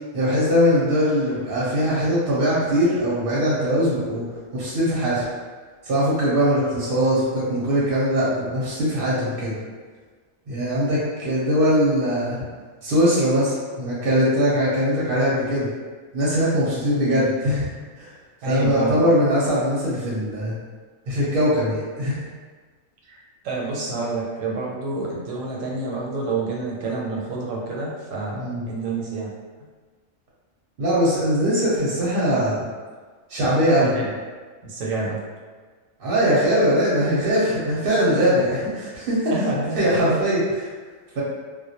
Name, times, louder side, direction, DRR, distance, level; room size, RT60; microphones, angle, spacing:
voice 1, 0.1-4.2 4.5-5.3 5.8-9.6 10.5-12.4 12.8-15.7 16.1-17.6 18.0-18.1 18.5-20.5 21.1-22.2 28.3-28.6 30.8-32.6 33.3-34.0 36.0-39.4 39.7-40.7 41.2-41.3, equal, 55° right, -7 dB, 0.7 m, -21 dB
voice 2, 18.4-19.0 23.1-23.2 23.4-29.3 33.8-34.1 34.6-35.2 39.3-40.2, right 3 dB, 85° right, -3 dB, 1.0 m, -28 dB
2.1 x 2.1 x 2.7 m, 1.4 s
omnidirectional pair, 1.3 m